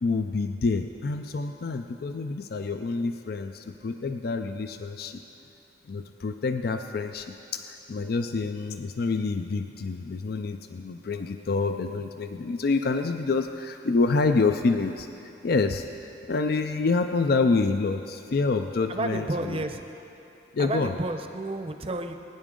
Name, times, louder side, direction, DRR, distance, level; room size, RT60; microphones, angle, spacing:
voice 1, 0.0-5.2 5.9-19.6 20.5-21.0, left 3 dB, 55° left, 7 dB, 0.4 m, -27 dB
voice 2, 18.9-19.8 20.6-22.1, right 2 dB, 35° right, 6 dB, 0.7 m, -31 dB
21.0 x 10.0 x 3.7 m, 2.8 s
head